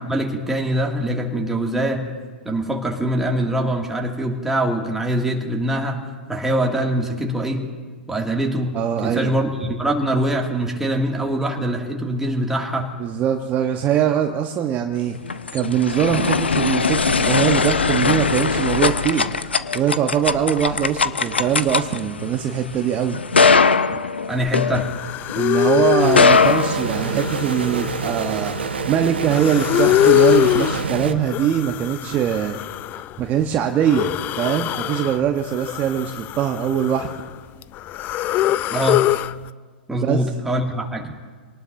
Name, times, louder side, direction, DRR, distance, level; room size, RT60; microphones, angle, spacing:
voice 1, 0.0-2.0 2.5-6.0 6.3-7.6 8.1-8.7 9.0-12.9 24.3-24.9 38.7-39.1 39.9-41.1, right 1 dB, 5° right, 0 dB, 2.2 m, -23 dB
voice 2, 8.7-9.3 13.0-15.1 15.5-19.3 19.7-23.2 25.4-28.5 28.9-32.6 33.2-37.1 39.9-40.2, right 9 dB, 30° right, 4 dB, 1.0 m, -22 dB
sound 1, 15.0-25.4 26.0-27.5, left 5 dB, 90° left, 0.6 m, -20 dB
sound 2, 24.5-24.6 24.8-26.4 26.8-28.8 29.2-30.9 31.3-33.2 33.8-35.2 35.5-37.3 37.6-39.3, left 14 dB, 30° left, 0.4 m, -23 dB
sound 3, 26.0-31.1, right 5 dB, 80° right, 1.1 m, -26 dB
26.0 x 19.0 x 2.6 m, 1.5 s
hypercardioid pair, 105°, 6 cm